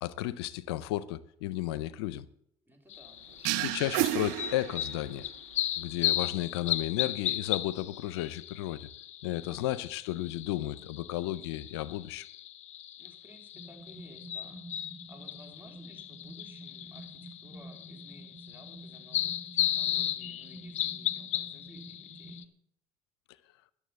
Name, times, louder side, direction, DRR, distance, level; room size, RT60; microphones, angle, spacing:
voice 1, 0.0-2.3 3.6-5.3 5.8-8.9 9.2-12.3, left 14 dB, 90° left, 0.5 m, -33 dB
voice 2, 2.7-3.8 13.0-22.5, right 1 dB, 15° right, 3.9 m, -57 dB
sound 1, 2.9-22.4, left 12 dB, 60° left, 0.8 m, -36 dB
sound 2, 3.4-5.2, right 18 dB, 80° right, 0.4 m, -31 dB
sound 3, 13.5-22.5, right 1 dB, 10° left, 3.9 m, -49 dB
12.0 x 6.9 x 8.6 m
hypercardioid pair, 60°, 13 cm